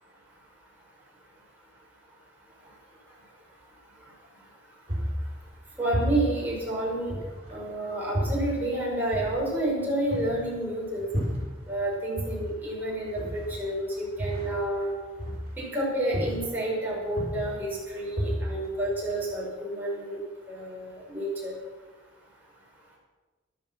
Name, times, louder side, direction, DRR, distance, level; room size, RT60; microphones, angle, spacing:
sound 1, 4.9-7.7 8.1-11.9 12.2-15.8 16.1-16.7 17.0-19.4, equal, 35° right, 5.9 m, -33 dB
voice 1, 5.8-7.1 7.5-11.0 11.7-13.2 13.5-14.9 15.6-20.2 20.5-21.5, right 1 dB, 10° right, -5 dB, 5.5 m, -29 dB
13.0 x 12.5 x 6.2 m, 1.3 s
head